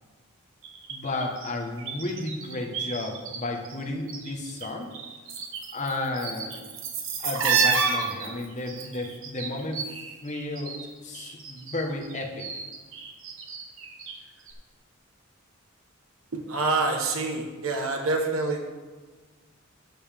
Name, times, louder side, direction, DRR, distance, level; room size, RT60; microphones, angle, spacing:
sound 1, 0.6-3.4 3.6-4.7 4.9-10.9 11.1-14.2 14.5-14.6, right 6 dB, 70° right, 1.3 m, -31 dB
voice 1, 0.9-4.9 5.7-6.6 7.2-10.7 11.0-12.5, left 2 dB, 35° left, 1 dB, 1.3 m, -33 dB
voice 2, 16.3-18.6, right 3 dB, 85° right, 2 dB, 1.3 m, -27 dB
13.0 x 7.0 x 3.6 m, 1.4 s
head